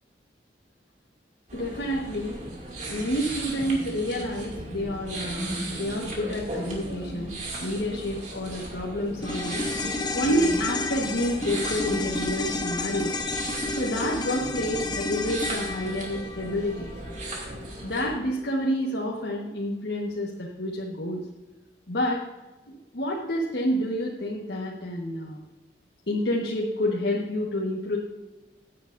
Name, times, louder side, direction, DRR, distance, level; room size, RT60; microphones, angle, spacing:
voice 1, 1.5-2.4 2.9-9.6 10.1-13.2 13.8-16.9 17.8-21.2 21.9-22.2 22.7-25.4 26.1-28.0, equal, 70° left, -3 dB, 1.4 m, -29 dB
sound 1, 1.5-18.1, right 1 dB, 45° right, 2.5 m, -36 dB
sound 2, 9.2-17.7 18.0-18.1, left 3 dB, 25° left, 0.8 m, -31 dB
15.0 x 9.4 x 2.6 m, 1.1 s
head